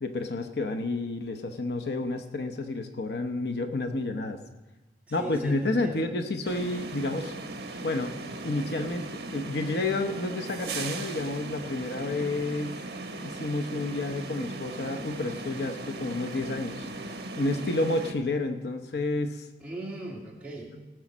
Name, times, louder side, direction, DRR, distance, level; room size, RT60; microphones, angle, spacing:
voice 1, 0.0-4.4 5.1-7.3 7.8-8.1 8.4-12.8 13.2-16.9 17.4-19.5, left 2 dB, 70° left, 7 dB, 0.7 m, -30 dB
voice 2, 5.1-6.1 19.6-20.7, right 2 dB, 10° right, -4 dB, 2.3 m, -39 dB
sound 1, 6.4-18.1, right 2 dB, 65° right, 1.2 m, -38 dB
17.5 x 6.3 x 6.1 m, 1.2 s
head